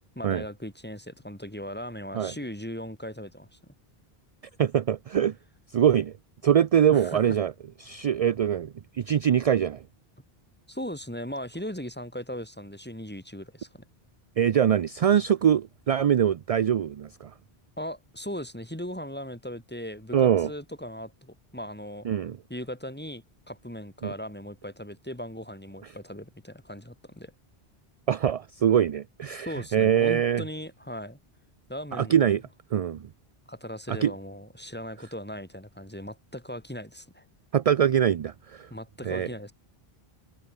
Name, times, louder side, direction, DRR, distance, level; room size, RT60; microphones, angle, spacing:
voice 1, 0.2-3.6 6.9-7.2 10.7-13.8 17.8-22.1 22.5-27.3 29.5-31.2 31.7-32.4 33.5-37.2 38.7-39.5, equal, 10° left, 3.6 m, -38 dB
voice 2, 4.6-5.4 5.7-6.1 6.4-7.5 7.8-9.8 14.4-17.3 20.1-20.5 22.0-22.4 24.0-24.1 28.1-30.4 31.9-32.4 32.7-33.1 33.9-34.1 37.5-38.7 39.0-39.3, right 9 dB, 50° right, 0.4 m, -23 dB
omnidirectional pair, 1.1 m